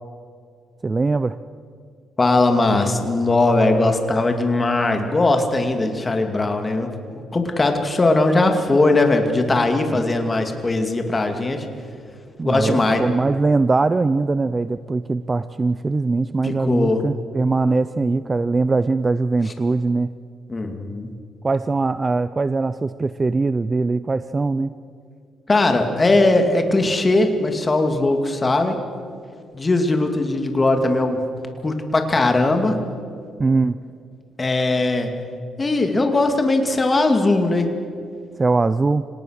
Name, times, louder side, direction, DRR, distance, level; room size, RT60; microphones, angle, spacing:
voice 1, 0.8-1.4 9.9-10.0 12.4-20.1 21.4-24.7 33.4-33.8 38.4-39.0, right 3 dB, 25° right, 14 dB, 0.5 m, -21 dB
voice 2, 2.2-11.7 12.4-13.0 16.4-17.0 20.5-21.1 25.5-28.8 29.5-31.3 31.6-32.8 34.4-35.1 35.6-37.7, left 2 dB, 25° left, 5 dB, 2.5 m, -19 dB
25.5 x 18.5 x 6.6 m, 2.3 s
cardioid pair, 90°, 0 cm